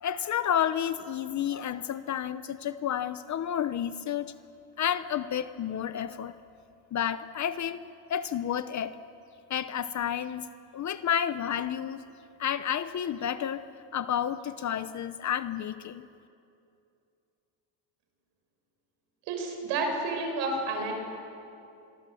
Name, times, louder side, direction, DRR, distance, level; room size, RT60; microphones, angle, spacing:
voice 1, 0.0-4.3 4.8-6.4 6.9-9.0 9.5-10.5 10.7-12.0 12.4-13.6 13.9-16.1, left 9 dB, 40° left, 12 dB, 0.8 m, -30 dB
voice 2, 19.3-20.9, right 3 dB, 85° right, 4 dB, 6.2 m, -30 dB
25.5 x 22.5 x 7.8 m, 2.6 s
cardioid pair, 135°, 43 cm